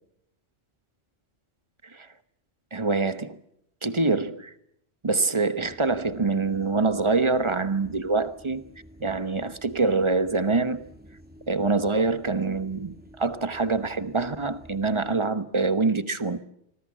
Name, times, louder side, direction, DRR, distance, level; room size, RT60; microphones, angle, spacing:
voice 1, 2.7-3.4 3.8-4.5 5.0-8.6 9.0-10.8 11.5-16.4, right 3 dB, 25° right, 12 dB, 1.1 m, -25 dB
sound 1, 5.6-15.2, equal, 10° right, 2.9 m, -51 dB
26.0 x 20.0 x 7.5 m, 0.78 s
omnidirectional pair, 1.2 m